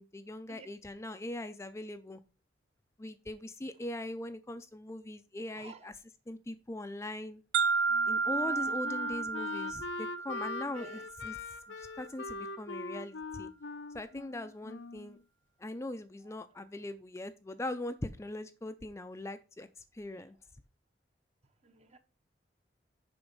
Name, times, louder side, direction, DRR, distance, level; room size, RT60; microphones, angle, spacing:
voice 1, 0.0-2.2 3.0-5.9 6.3-7.4 8.1-11.4 11.8-13.5 13.9-15.2 15.6-20.4, left 1 dB, 15° left, 0.4 m, -41 dB
voice 2, 5.5-5.9 10.6-11.0 21.6-22.0, right 4 dB, 35° right, 0.9 m, -52 dB
sound 1, 7.5-11.5, right 5 dB, 70° right, 0.4 m, -32 dB
Wind instrument woodwind instrument, 7.9-15.2, left 3 dB, 75° left, 0.6 m, -42 dB
7.0 x 5.1 x 5.2 m
head